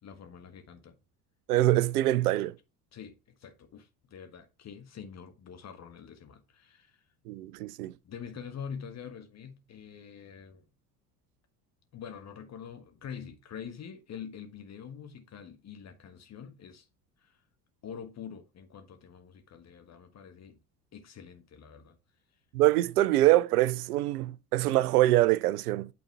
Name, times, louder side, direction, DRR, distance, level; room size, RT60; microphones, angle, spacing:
voice 1, 0.0-1.0 2.9-7.0 8.0-10.7 11.9-16.9 17.2-17.4 17.8-20.6 20.9-22.0, left 7 dB, 30° left, 1.4 m, -45 dB
voice 2, 1.5-2.6 7.3-7.9 22.5-25.9, right 15 dB, 65° right, 0.6 m, -24 dB
9.0 x 4.1 x 4.7 m
figure-of-eight pair, 65°, 50 cm